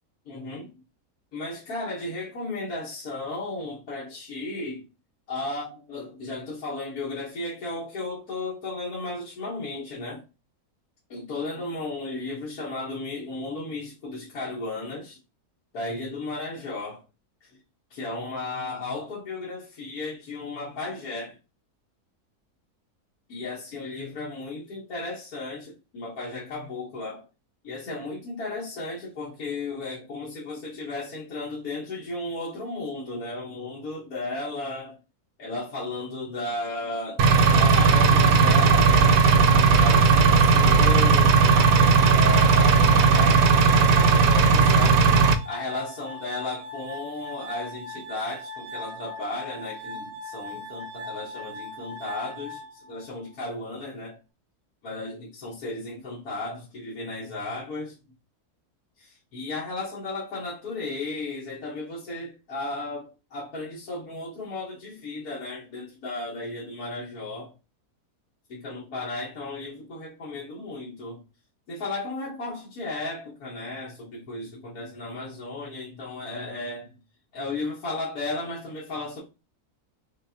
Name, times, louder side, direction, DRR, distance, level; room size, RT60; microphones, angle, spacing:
voice 1, 0.2-0.7 1.3-4.8 5.3-10.2 11.1-15.2 15.7-17.0 17.4-17.5 17.9-21.4 23.3-27.3 27.6-35.0 35.4-37.2 37.5-41.4 41.7-45.1 45.4-54.2 54.8-57.9 59.0-67.5 68.5-71.2 71.7-77.0 77.3-79.2, left 2 dB, 75° left, 1.6 m, -34 dB
Engine, 37.2-45.3, right 5 dB, 80° right, 1.1 m, -17 dB
Glass, 41.3-53.3, left 2 dB, 60° right, 0.9 m, -39 dB
5.9 x 2.3 x 2.7 m
omnidirectional pair, 1.6 m